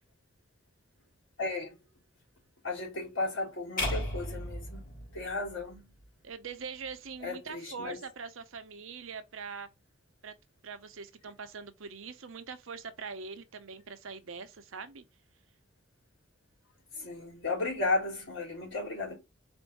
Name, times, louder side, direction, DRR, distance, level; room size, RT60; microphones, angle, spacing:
voice 1, 1.4-1.8 2.6-4.8 5.1-5.8 7.2-8.0 16.9-19.2, left 3 dB, 65° left, 2.9 m, -34 dB
sound 1, 3.8-6.0, left 1 dB, 45° left, 2.7 m, -35 dB
voice 2, 6.2-9.7 10.2-10.3 10.6-15.0, right 5 dB, 75° right, 0.7 m, -43 dB
4.3 x 2.6 x 4.6 m
head